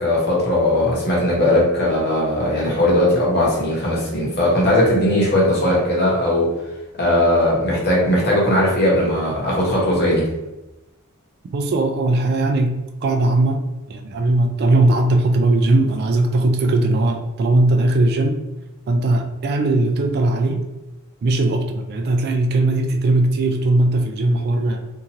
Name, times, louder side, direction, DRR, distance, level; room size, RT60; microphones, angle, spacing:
voice 1, 0.0-6.5 7.0-10.3, left 1 dB, 50° left, -5 dB, 1.0 m, -18 dB
voice 2, 11.5-18.4 18.9-20.6 21.2-24.8, right 2 dB, 45° right, 4 dB, 0.3 m, -19 dB
2.7 x 2.4 x 2.8 m, 0.99 s
head